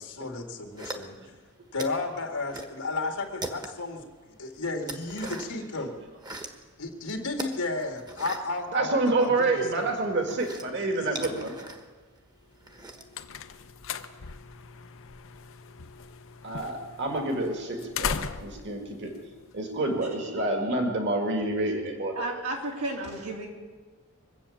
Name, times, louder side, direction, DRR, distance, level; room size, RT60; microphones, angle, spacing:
voice 1, 0.0-1.4 1.7-5.9 6.8-11.4, left 3 dB, 85° left, 2 dB, 2.1 m, -34 dB
sound 1, 0.8-1.4 1.8-2.8 3.1-4.0 4.4-5.6 6.0-6.6 7.3-9.4 9.7-13.2, right 2 dB, 20° right, 1.2 m, -40 dB
voice 2, 8.7-11.5 16.4-19.1 19.5-22.1, right 2 dB, 50° right, 2 dB, 2.1 m, -28 dB
sound 2, 12.6-20.1, left 6 dB, 60° left, 0.8 m, -39 dB
voice 3, 22.2-23.5, right 2 dB, 85° right, -1 dB, 3.3 m, -33 dB
23.5 x 8.3 x 7.1 m, 1.4 s
head